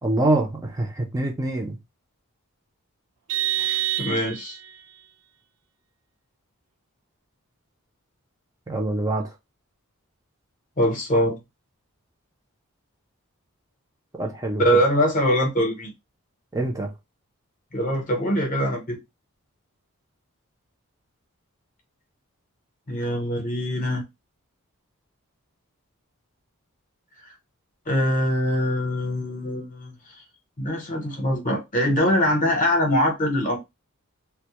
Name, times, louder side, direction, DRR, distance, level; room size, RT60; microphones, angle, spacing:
voice 1, 0.0-1.8 8.7-9.2 14.2-14.6 16.5-16.9, right 2 dB, 15° right, 0.4 m, -25 dB
Vehicle horn car horn honking, 3.3-4.7, right 13 dB, 90° right, 0.5 m, -26 dB
voice 2, 3.6-4.6 10.8-11.4 14.6-15.9 17.7-19.0 22.9-24.0 27.9-29.9 30.6-33.6, equal, 35° left, 0.7 m, -23 dB
2.1 x 2.0 x 2.8 m
head